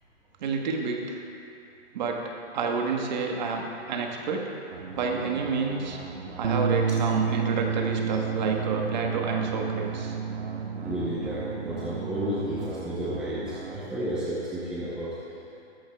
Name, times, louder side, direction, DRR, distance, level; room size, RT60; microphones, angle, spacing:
voice 1, 0.4-1.2 1.9-2.2 2.5-4.5 4.9-6.0 6.4-10.1, right 4 dB, 40° right, 1 dB, 1.3 m, -29 dB
sound 1, 4.7-13.8, right 4 dB, 70° right, 1.6 m, -40 dB
Bass guitar, 6.4-12.7, right 6 dB, 90° right, 0.8 m, -30 dB
voice 2, 10.8-15.2, equal, ahead, -7 dB, 0.7 m, -32 dB
14.0 x 14.0 x 2.3 m, 2.6 s
hypercardioid pair, 145°, 34 cm